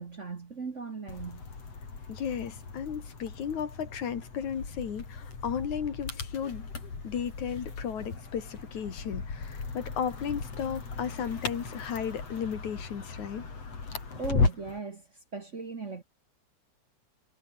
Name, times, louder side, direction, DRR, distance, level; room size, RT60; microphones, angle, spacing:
voice 1, 0.0-1.4 14.1-16.0, right 4 dB, 40° right, 1.1 m, -38 dB
sound 1, 1.1-14.8, left 4 dB, 55° left, 5.7 m, -36 dB
voice 2, 2.1-6.7 7.0-13.4, left 8 dB, 75° left, 3.8 m, -34 dB
omnidirectional pair, 3.4 m